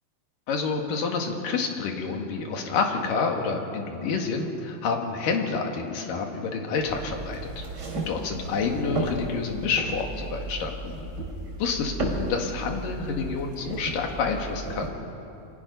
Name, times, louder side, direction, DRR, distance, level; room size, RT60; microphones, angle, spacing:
voice 1, 0.5-7.6 8.1-11.0 11.6-14.9, left 5 dB, 65° left, 2 dB, 3.5 m, -28 dB
sound 1, 6.8-14.9, right 2 dB, 30° right, 3.3 m, -34 dB
28.5 x 24.5 x 5.5 m, 2.8 s
omnidirectional pair, 4.3 m